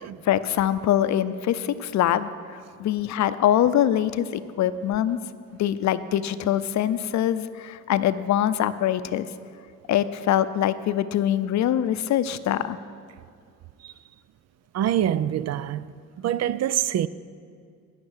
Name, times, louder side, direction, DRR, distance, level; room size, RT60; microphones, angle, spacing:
voice 1, 0.2-5.2 5.6-9.3 9.9-12.8, left 11 dB, 65° left, 0.6 m, -23 dB
voice 2, 14.7-15.9 16.2-17.1, right 11 dB, 60° right, 0.4 m, -25 dB
17.0 x 5.8 x 6.4 m
cardioid pair, 90°, 30 cm